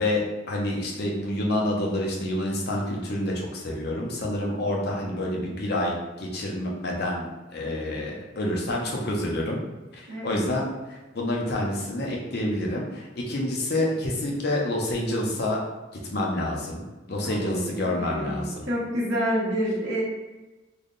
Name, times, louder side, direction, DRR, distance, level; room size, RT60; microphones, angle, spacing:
voice 1, 0.0-9.6 9.9-15.6 16.1-18.7, left 1 dB, 55° left, -2 dB, 0.7 m, -28 dB
voice 2, 10.1-10.4 17.4-20.0, equal, 70° right, -7 dB, 1.0 m, -28 dB
3.4 x 2.2 x 3.8 m, 1.1 s
head